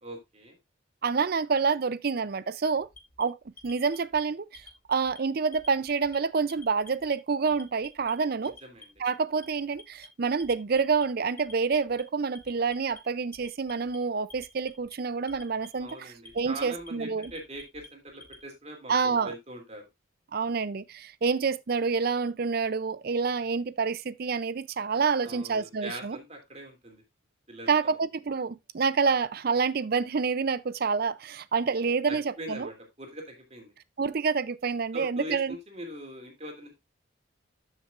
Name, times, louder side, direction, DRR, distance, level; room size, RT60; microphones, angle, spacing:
voice 1, 0.0-0.6 8.4-8.9 15.8-19.9 25.2-27.0 27.5-27.9 32.1-33.7 34.9-36.7, right 1 dB, 30° right, 2.8 m, -42 dB
voice 2, 1.0-2.9 3.2-3.4 3.6-4.6 4.9-8.5 9.0-17.3 18.9-19.3 20.3-26.2 27.7-32.7 34.0-35.6, right 5 dB, 45° right, 0.5 m, -28 dB
Alarm, 2.9-4.2 4.5-5.2 5.5-6.2 6.5-7.1 7.5-8.1 8.4-9.1 9.4-10.1 10.4-11.0 11.4-12.0 12.3-13.0 13.3-14.0 14.3-14.9 15.3-15.9 16.2-16.9 17.2-18.4, left 3 dB, 45° left, 1.6 m, -50 dB
12.5 x 6.2 x 2.5 m
head